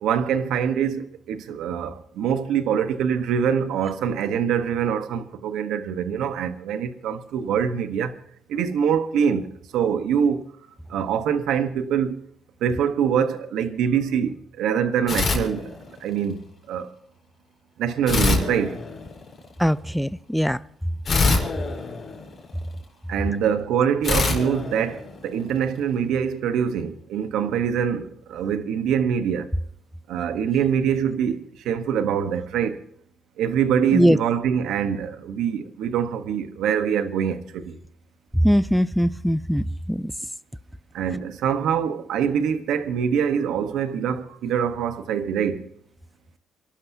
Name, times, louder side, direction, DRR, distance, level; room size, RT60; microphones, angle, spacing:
voice 1, 0.0-8.1 8.5-10.5 10.9-12.2 12.6-15.7 16.0-16.4 16.7-16.9 17.8-18.8 23.1-29.5 30.1-32.8 33.4-37.8 40.9-45.7, right 8 dB, 85° right, 1.1 m, -24 dB
sound 1, 15.1-16.2 18.1-19.4 21.0-22.7 24.0-25.6, left 3 dB, 45° left, 4.2 m, -25 dB
voice 2, 19.6-20.6 33.9-34.2 38.4-40.1, equal, ahead, 0.5 m, -21 dB
29.5 x 12.0 x 2.8 m
cardioid pair, 90°, 0 cm